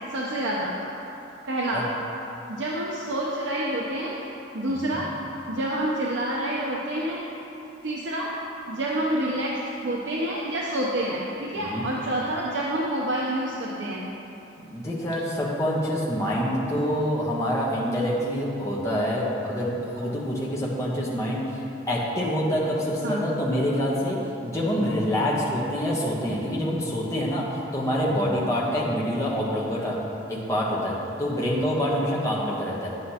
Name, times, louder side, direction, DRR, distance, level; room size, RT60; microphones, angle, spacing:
voice 1, 0.1-0.7 1.5-1.8 2.5-4.1 4.5-5.1 5.5-7.2 7.8-8.3 8.7-9.5 9.8-14.0 23.0-23.2, right 1 dB, 65° right, -4 dB, 0.7 m, -28 dB
voice 2, 4.7-5.0 11.5-11.8 14.7-21.6 21.9-24.2 24.4-27.5 27.7-30.0 30.3-32.9, equal, 15° left, -5 dB, 1.0 m, -26 dB
9.3 x 7.9 x 2.8 m, 2.9 s
head